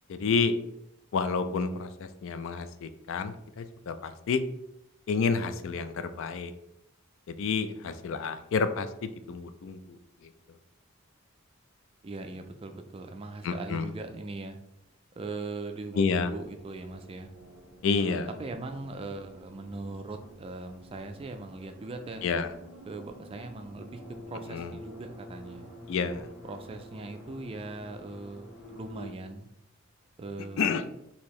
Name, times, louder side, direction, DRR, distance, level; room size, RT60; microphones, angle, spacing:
voice 1, 0.1-0.5 1.1-4.4 5.1-6.5 7.4-9.8 13.4-13.9 16.0-16.3 17.8-18.3 22.2-22.5 24.5-24.7 25.9-26.3 30.6-30.8, left 5 dB, 60° left, 10 dB, 0.4 m, -29 dB
voice 2, 12.0-14.6 15.2-17.3 17.9-22.2 22.9-24.0 24.3-25.7 26.4-29.5 30.2-30.7, right 3 dB, 25° right, 6 dB, 0.3 m, -40 dB
sound 1, 16.3-29.1, equal, 5° right, 1.1 m, -49 dB
4.4 x 2.9 x 3.1 m, 0.81 s
head